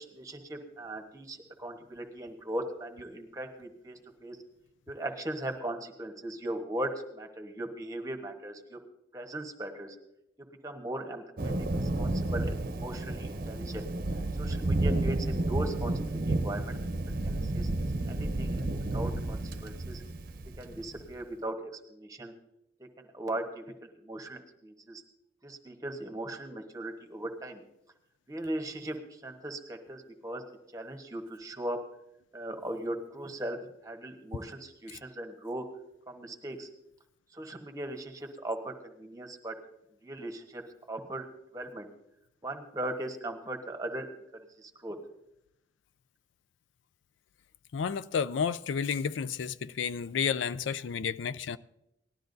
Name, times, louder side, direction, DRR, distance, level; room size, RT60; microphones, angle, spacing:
voice 1, 0.0-4.4 4.9-8.8 9.1-10.0 10.6-13.9 14.4-16.8 17.2-17.7 18.0-18.6 18.9-20.0 20.6-22.3 22.8-25.0 25.4-27.6 28.3-30.4 30.7-31.8 32.3-33.6 33.8-35.6 36.1-36.7 37.3-39.5 40.0-40.6 40.9-41.3 41.5-41.9 42.4-44.1 44.6-45.0, right 1 dB, 20° right, 1.2 m, -38 dB
Thunder, 11.4-21.0, right 2 dB, 50° right, 0.7 m, -31 dB
voice 2, 47.7-51.6, left 6 dB, 80° left, 0.4 m, -31 dB
18.5 x 12.5 x 2.7 m
head